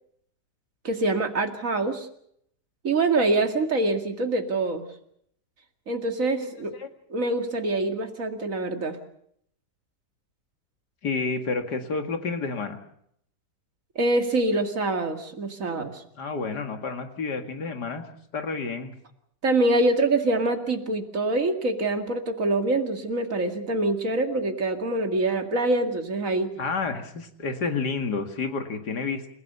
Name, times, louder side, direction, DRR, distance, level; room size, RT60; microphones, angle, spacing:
voice 1, 0.8-2.1 2.8-4.8 5.9-6.7 7.1-9.0 14.0-16.0 19.4-26.5, right 2 dB, 50° right, 5 dB, 2.6 m, -25 dB
voice 2, 11.0-12.8 16.2-18.0 18.3-18.9 26.6-29.3, left 4 dB, 70° left, 6 dB, 2.7 m, -30 dB
29.5 x 16.0 x 6.9 m, 0.70 s
omnidirectional pair, 1.8 m